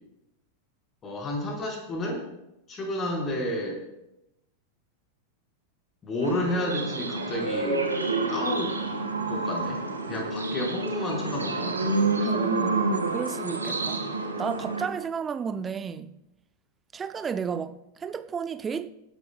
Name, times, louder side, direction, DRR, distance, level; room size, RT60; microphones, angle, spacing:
voice 1, 1.0-2.2 2.7-3.8 6.0-7.9 8.3-8.8 9.3-12.0, left 1 dB, 25° left, 4.7 m, -31 dB
sound 1, 6.2-14.9, right 3 dB, 80° right, 2.0 m, -28 dB
sound 2, 7.1-12.3, left 1 dB, 85° left, 2.2 m, -39 dB
voice 2, 12.2-12.8 13.1-16.1 16.9-18.9, right 6 dB, 20° right, 0.7 m, -32 dB
23.5 x 12.0 x 2.4 m
figure-of-eight pair, 90°, 0 cm